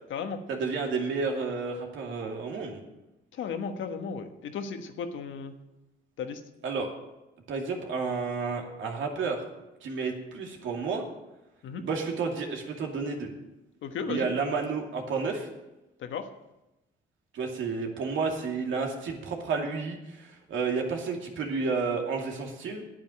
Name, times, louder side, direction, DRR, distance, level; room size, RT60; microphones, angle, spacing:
voice 1, 0.5-2.8 6.6-6.9 7.5-9.4 9.8-11.0 11.8-13.3 14.1-15.5 17.3-22.8, right 4 dB, 75° right, 1 dB, 2.5 m, -31 dB
voice 2, 3.3-5.5 6.2-6.4 11.6-11.8 13.8-14.3 16.0-16.3, left 6 dB, 75° left, 6 dB, 1.4 m, -35 dB
9.0 x 8.8 x 8.7 m, 0.98 s
cardioid pair, 90°, 20 cm